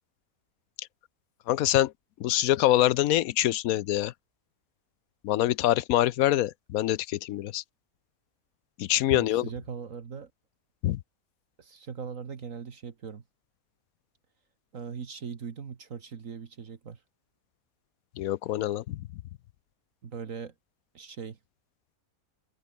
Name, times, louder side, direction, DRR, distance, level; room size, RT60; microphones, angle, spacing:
voice 1, 1.5-1.9 2.2-4.1 5.2-7.6 8.8-9.5 10.8-11.0 18.2-19.0, left 14 dB, 75° left, 1.0 m, -25 dB
voice 2, 9.1-10.3 11.6-13.2 14.7-17.0 20.0-20.5 20.9-21.4, right 6 dB, 65° right, 1.8 m, -40 dB
open air
omnidirectional pair, 1.5 m